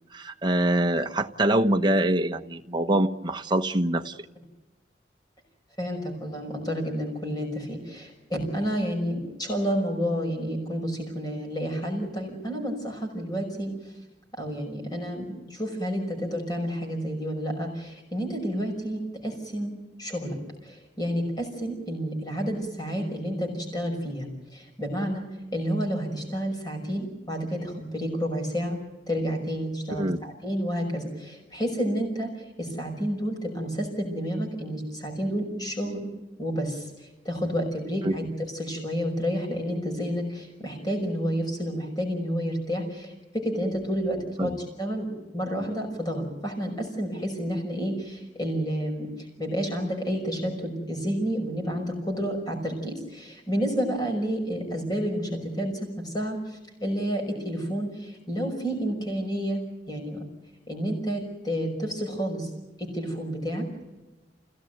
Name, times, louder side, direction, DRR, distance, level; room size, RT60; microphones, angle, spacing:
voice 1, 0.1-4.1 30.0-30.2 38.0-38.1 44.4-44.6, right 1 dB, 25° right, 6 dB, 1.0 m, -24 dB
voice 2, 5.8-13.9 14.4-19.7 20.0-25.3 25.5-28.8 29.1-36.1 36.4-45.1 45.3-59.6 59.9-60.2 60.7-62.5 62.8-63.7, equal, 25° left, 2 dB, 5.7 m, -30 dB
27.5 x 17.0 x 9.2 m, 1.1 s
head